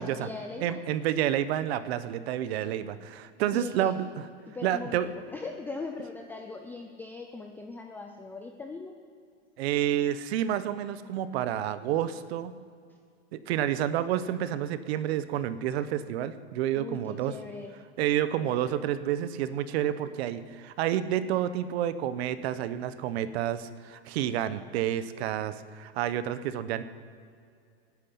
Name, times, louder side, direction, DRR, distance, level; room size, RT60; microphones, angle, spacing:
voice 1, 0.0-0.8 3.5-3.9 4.5-8.9 16.8-17.7, left 3 dB, 5° left, 3 dB, 0.3 m, -40 dB
voice 2, 0.6-4.1 4.6-5.1 9.6-12.5 13.3-17.3 18.0-26.8, right 11 dB, 60° right, 13 dB, 0.9 m, -29 dB
13.5 x 9.8 x 8.5 m, 2.2 s
supercardioid pair, 145°, 36 cm